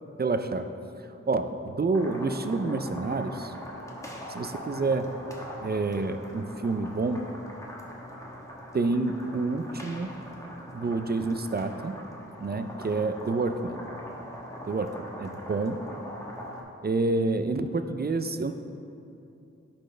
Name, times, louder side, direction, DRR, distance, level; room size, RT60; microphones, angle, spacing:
voice 1, 0.2-0.7 1.3-3.5 4.3-5.1 5.6-7.2 8.7-10.1 10.7-11.9 12.4-13.8 14.7-15.8 16.8-18.5, right 3 dB, 30° right, 9 dB, 0.4 m, -28 dB
sound 1, 1.9-16.6, equal, 10° left, 1.1 m, -42 dB
11.0 x 4.3 x 3.3 m, 2.7 s
cardioid pair, 40°, 31 cm